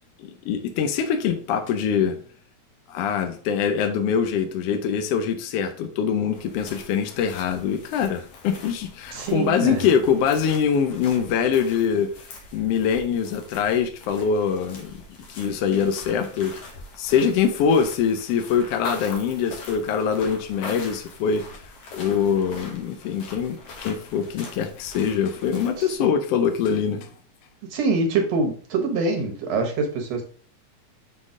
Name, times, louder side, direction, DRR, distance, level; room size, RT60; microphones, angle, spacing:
voice 1, 0.2-2.2 2.9-12.1 12.5-15.0 15.4-16.5 17.0-21.6 21.9-27.1, left 7 dB, 75° left, 1.4 m, -23 dB
sound 1, 6.3-26.0, left 2 dB, 60° left, 2.0 m, -42 dB
voice 2, 9.1-9.9 25.8-26.1 27.6-30.2, right 3 dB, 65° right, 2.0 m, -25 dB
6.1 x 3.8 x 4.9 m
omnidirectional pair, 3.6 m